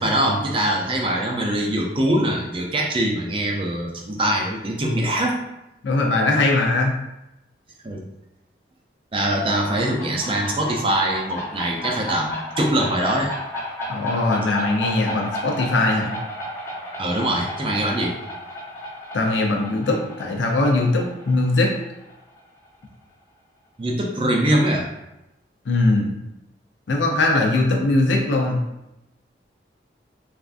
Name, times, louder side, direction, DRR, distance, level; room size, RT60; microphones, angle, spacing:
voice 1, 0.0-5.4 7.8-8.0 9.1-13.3 17.0-18.1 23.8-24.9, right 1 dB, 30° right, 0 dB, 0.4 m, -23 dB
voice 2, 5.8-7.0 13.9-16.1 19.1-21.7 25.6-26.1 26.9-28.6, left 2 dB, 85° left, 1 dB, 0.6 m, -20 dB
sound 1, 9.4-22.7, left 1 dB, 15° left, 0.7 m, -33 dB
3.4 x 2.5 x 2.4 m, 0.92 s
head